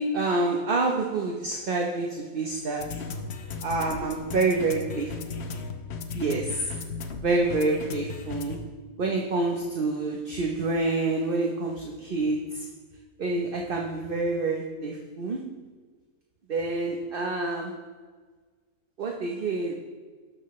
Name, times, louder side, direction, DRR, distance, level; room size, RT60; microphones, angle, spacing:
voice 1, 0.0-3.0 3.6-5.4 6.1-6.7 7.2-8.7 9.0-12.7 13.2-15.4 16.5-17.8 19.0-19.7, right 3 dB, 45° right, 1 dB, 0.9 m, -27 dB
sound 1, 2.8-8.6, left 4 dB, 55° left, 0.9 m, -36 dB
17.5 x 6.7 x 3.1 m, 1.5 s
omnidirectional pair, 1.5 m